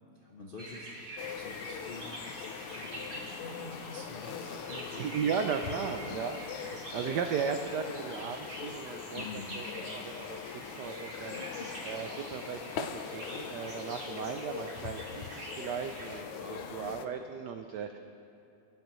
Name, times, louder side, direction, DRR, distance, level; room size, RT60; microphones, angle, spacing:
voice 1, 0.1-5.2 5.6-6.2 9.1-9.6 11.3-11.8 16.3-16.9, left 3 dB, 60° left, -2 dB, 0.5 m, -47 dB
sound 1, 0.6-16.2, right 1 dB, 35° right, 1.5 m, -45 dB
sound 2, 1.2-17.1, left 8 dB, 90° left, 1.6 m, -42 dB
voice 2, 5.0-9.7 9.9-11.4 11.8-18.0, right 7 dB, 80° right, 6 dB, 0.9 m, -36 dB
21.5 x 10.5 x 3.0 m, 2.7 s
omnidirectional pair, 2.4 m